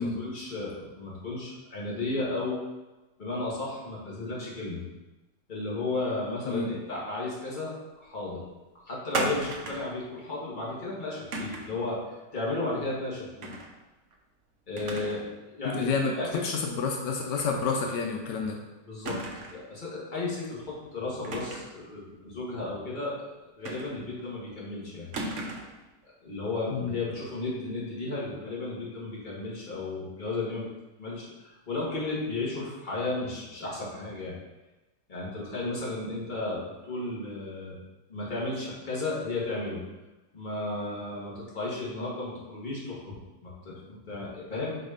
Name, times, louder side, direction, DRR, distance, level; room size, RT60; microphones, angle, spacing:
voice 1, 0.0-2.6 3.2-4.8 5.5-7.7 8.0-8.4 8.9-12.0 12.3-13.5 14.7-15.2 15.5-15.9 16.2-16.4 18.8-19.2 19.5-23.2 23.5-25.1 26.0-30.7 31.0-34.3 35.1-37.8 38.1-39.8 40.3-44.8, left 2 dB, 30° left, -6 dB, 1.7 m, -34 dB
sound 1, 9.1-10.0 11.3-11.8 13.4-13.7 14.1-14.2 14.8-15.3 15.6-15.7 17.4-17.6 17.9-18.0 19.1-19.7 21.2-21.8 23.7-24.2 25.1-25.8, right 2 dB, 60° right, 0.9 m, -35 dB
voice 2, 15.6-16.2 16.4-18.6 26.7-26.9, left 4 dB, 80° left, 1 dB, 1.4 m, -29 dB
4.7 x 4.2 x 5.0 m, 1.1 s
omnidirectional pair, 1.8 m